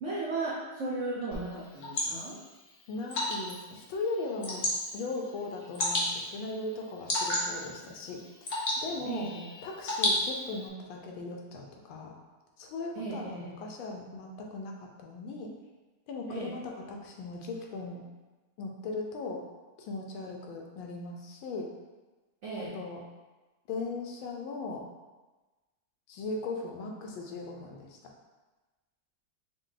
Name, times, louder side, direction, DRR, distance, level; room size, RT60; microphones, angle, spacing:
voice 1, 0.0-2.4 9.0-9.5 12.9-13.5 16.3-16.5 22.4-22.8, right 3 dB, 80° right, -6 dB, 0.6 m, -36 dB
Water / Drip, 1.3-10.7, left 1 dB, 60° left, 0.6 m, -34 dB
voice 2, 2.9-4.6 4.9-8.2 8.5-9.3 9.6-12.1 12.6-15.5 16.1-18.0 18.6-19.4 19.8-21.7 22.6-23.0 23.7-24.8 26.1-28.1, left 3 dB, 80° left, 1 dB, 1.4 m, -38 dB
5.3 x 2.3 x 3.8 m, 1.2 s
omnidirectional pair, 2.2 m